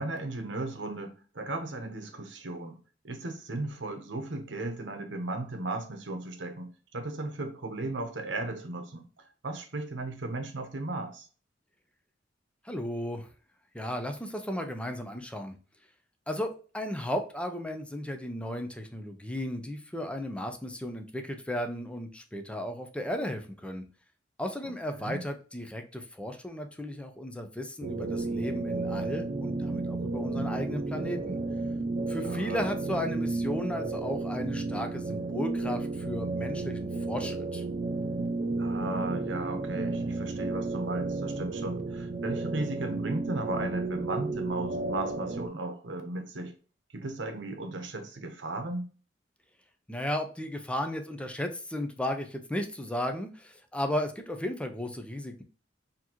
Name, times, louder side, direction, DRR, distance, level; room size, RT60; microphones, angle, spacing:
voice 1, 0.0-2.8 3.0-9.0 9.4-11.3 24.9-25.2 32.2-32.6 38.6-46.5 46.9-48.9, right 2 dB, 75° right, 6 dB, 0.9 m, -35 dB
voice 2, 12.6-13.3 13.7-15.6 16.3-23.9 24.4-31.4 32.1-37.6 49.9-55.4, left 1 dB, 5° left, 5 dB, 0.5 m, -35 dB
sound 1, 27.8-45.5, right 3 dB, 45° right, 0.4 m, -32 dB
4.3 x 2.9 x 2.9 m, 0.38 s
head